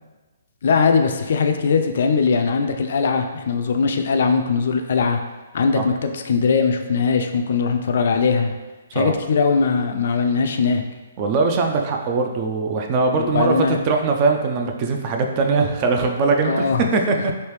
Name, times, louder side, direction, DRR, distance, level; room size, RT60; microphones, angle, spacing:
voice 1, 0.6-5.2 5.5-8.5 8.9-10.8 13.2-13.8 16.4-16.8 17.1-17.3, left 5 dB, 60° left, 5 dB, 0.3 m, -20 dB
voice 2, 11.2-17.1, right 4 dB, 30° right, 3 dB, 0.3 m, -21 dB
3.3 x 2.7 x 3.0 m, 1.2 s
hypercardioid pair, 160°, 0 cm